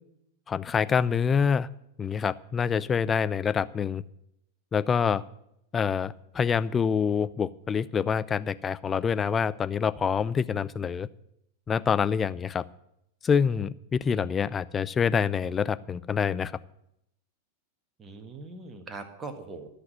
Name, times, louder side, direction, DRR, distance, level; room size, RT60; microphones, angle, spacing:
voice 1, 0.5-1.7 2.0-4.0 4.7-5.2 5.7-11.1 11.7-12.6 13.2-16.5, left 6 dB, 20° left, 15 dB, 0.4 m, -26 dB
voice 2, 18.0-19.7, right 3 dB, 20° right, 7 dB, 1.5 m, -41 dB
13.0 x 6.0 x 9.2 m, 0.79 s
figure-of-eight pair, 90°, 0 cm